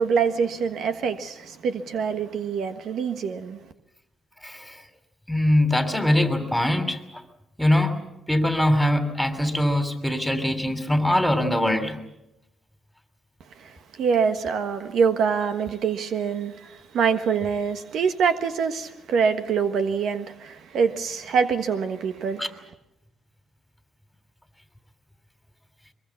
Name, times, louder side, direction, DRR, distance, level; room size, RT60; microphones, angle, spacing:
voice 1, 0.0-3.6 13.6-22.6, right 6 dB, 70° right, 1.4 m, -25 dB
voice 2, 4.4-4.8 5.3-7.0 7.6-7.9 8.3-12.0 22.4-22.5, left 1 dB, 5° left, 3.0 m, -22 dB
22.5 x 22.0 x 7.2 m
cardioid pair, 90°, 0 cm